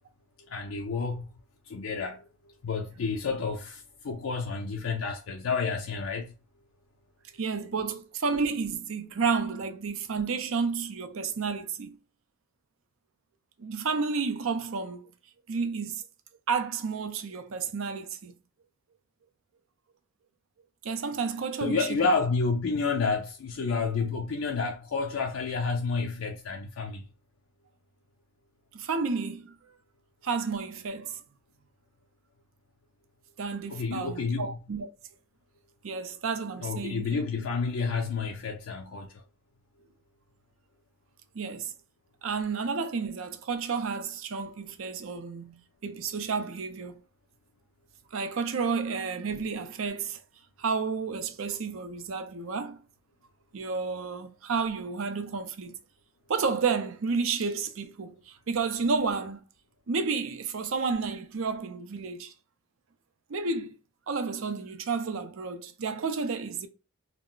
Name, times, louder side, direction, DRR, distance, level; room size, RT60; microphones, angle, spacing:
voice 1, 0.5-1.3 1.7-2.2 2.6-6.3 21.6-27.1 33.7-34.6 36.6-39.2, left 4 dB, 85° left, 0.4 m, -30 dB
voice 2, 7.4-12.0 13.6-15.1 15.5-16.0 16.5-18.3 20.8-22.0 28.7-29.5 30.2-31.2 33.4-34.9 35.8-37.2 41.3-41.7 42.2-47.0 48.1-50.2 50.6-52.8 53.5-55.8 56.3-59.4 59.9-62.3 63.3-63.7 64.1-66.7, right 5 dB, 80° right, 0.5 m, -31 dB
2.3 x 2.1 x 3.7 m
head